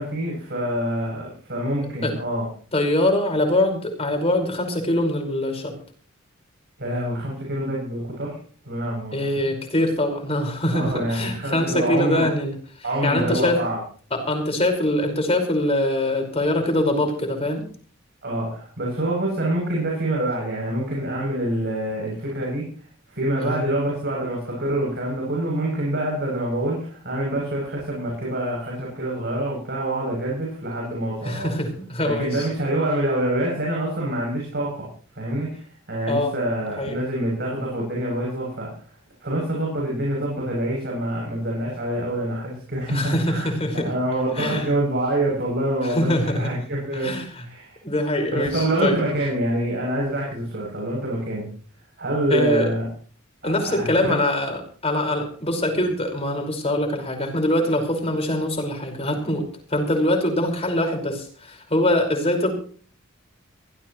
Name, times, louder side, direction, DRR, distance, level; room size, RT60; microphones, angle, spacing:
voice 1, 0.0-2.5 6.8-8.4 8.6-9.5 10.7-12.3 12.8-13.8 18.2-22.6 23.1-31.5 32.0-34.9 35.1-38.7 39.2-43.5 43.8-47.1 47.4-47.7 48.3-51.5 52.0-52.9 53.4-54.1, right 1 dB, 55° right, -2 dB, 7.9 m, -26 dB
voice 2, 2.7-5.8 9.1-12.5 13.0-13.6 14.1-17.6 23.4-23.6 31.2-32.5 36.1-36.3 36.8-37.0 42.9-43.9 44.3-44.7 45.8-46.5 46.9-47.4 47.8-49.0 52.3-52.7 53.4-59.4 59.7-62.5, left 1 dB, 30° left, 3 dB, 5.2 m, -23 dB
23.0 x 17.0 x 3.2 m, 0.43 s
head